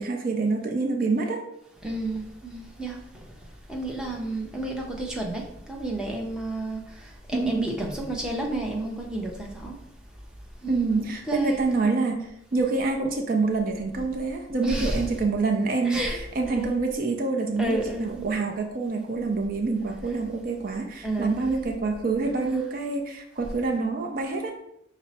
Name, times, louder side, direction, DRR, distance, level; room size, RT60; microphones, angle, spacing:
voice 1, 0.0-1.4 7.3-7.7 10.7-24.5, right 3 dB, 45° right, 3 dB, 0.4 m, -26 dB
voice 2, 1.8-3.2 3.7-9.7 10.6-11.8 14.6-15.0 15.8-16.2 16.5-16.7 17.6-18.3 21.0-21.5, right 1 dB, 5° right, -1 dB, 0.6 m, -31 dB
5.4 x 2.0 x 4.1 m, 0.77 s
head